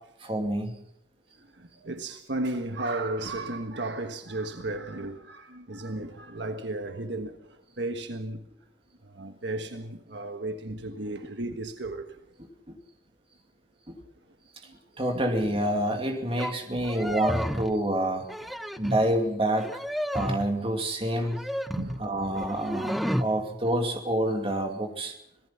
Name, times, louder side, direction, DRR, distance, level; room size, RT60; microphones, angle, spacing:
voice 1, 0.2-0.7 13.9-14.0 15.0-18.3 18.8-19.7 20.1-21.5 22.0-25.2, right 1 dB, 30° right, 2.6 m, -27 dB
voice 2, 1.6-7.4 7.8-8.4 9.0-12.2 16.7-16.9 21.7-22.2, right 2 dB, 70° right, 1.5 m, -34 dB
sound 1, 16.4-16.5 16.8-17.8 18.2-19.1 19.6-20.5 21.2-22.0 22.4-23.3, equal, ahead, 0.8 m, -31 dB
26.5 x 18.5 x 5.8 m
head